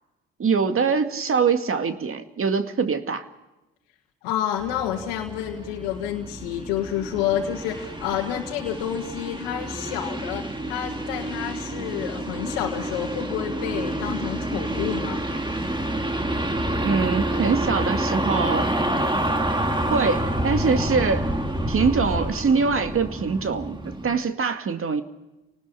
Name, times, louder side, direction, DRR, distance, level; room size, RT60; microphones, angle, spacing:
voice 1, 0.4-3.3 16.8-18.7 19.9-21.3 21.7-25.0, right 5 dB, 45° right, 7 dB, 2.2 m, -23 dB
voice 2, 4.2-15.2, left 10 dB, 85° left, -1 dB, 1.8 m, -29 dB
sound 1, 4.6-24.2, right 1 dB, 15° right, 2.7 m, -28 dB
28.5 x 19.0 x 5.8 m, 1.0 s
hypercardioid pair, 45°, 29 cm